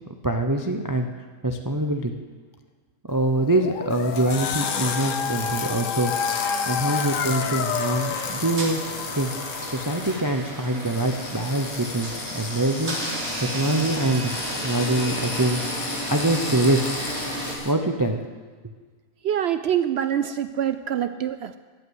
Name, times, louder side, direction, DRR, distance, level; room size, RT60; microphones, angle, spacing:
voice 1, 0.2-1.1 1.4-2.1 3.1-6.1 6.7-8.8 9.2-9.3 9.7-13.0 13.4-14.3 14.6-15.6 16.1-16.9 17.6-18.3, right 2 dB, 25° right, 5 dB, 0.5 m, -24 dB
Dog, 3.3-8.4, left 8 dB, 70° left, 0.9 m, -30 dB
sound 1, 3.9-17.7, left 5 dB, 85° left, 1.6 m, -33 dB
sound 2, 6.8-17.6, right 1 dB, 50° right, 2.9 m, -33 dB
voice 2, 19.2-21.6, right 10 dB, 65° right, 11 dB, 0.6 m, -25 dB
13.5 x 8.3 x 8.0 m, 1.5 s
omnidirectional pair, 1.5 m